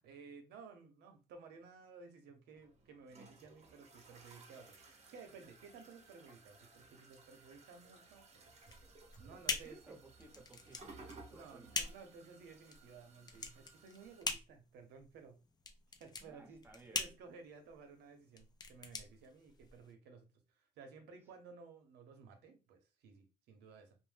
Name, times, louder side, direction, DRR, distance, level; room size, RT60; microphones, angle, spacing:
voice 1, 0.0-8.5 9.2-10.0 11.3-15.4 16.0-24.0, right 5 dB, 80° right, 0.7 m, -56 dB
sound 1, 2.5-14.2, right 3 dB, 40° right, 0.8 m, -59 dB
sound 2, 8.6-19.9, left 4 dB, 25° left, 0.4 m, -43 dB
voice 2, 9.3-11.7 16.2-17.0, right 2 dB, 10° right, 0.8 m, -59 dB
2.6 x 2.0 x 3.3 m
cardioid pair, 110°, 17 cm